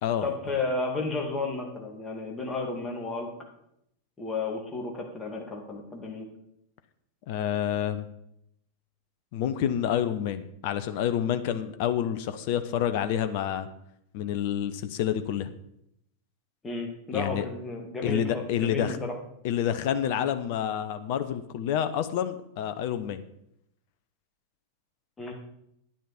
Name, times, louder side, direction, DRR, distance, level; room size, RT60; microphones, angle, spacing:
voice 1, 0.2-3.3 4.2-6.3 16.6-19.2 25.2-25.3, left 3 dB, 15° left, 1 dB, 2.2 m, -32 dB
voice 2, 7.3-8.0 9.3-13.7 14.1-15.5 17.1-17.5 18.0-19.0 19.4-23.2, left 10 dB, 50° left, 11 dB, 0.7 m, -28 dB
10.0 x 9.8 x 4.3 m, 0.77 s
figure-of-eight pair, 90°, 0 cm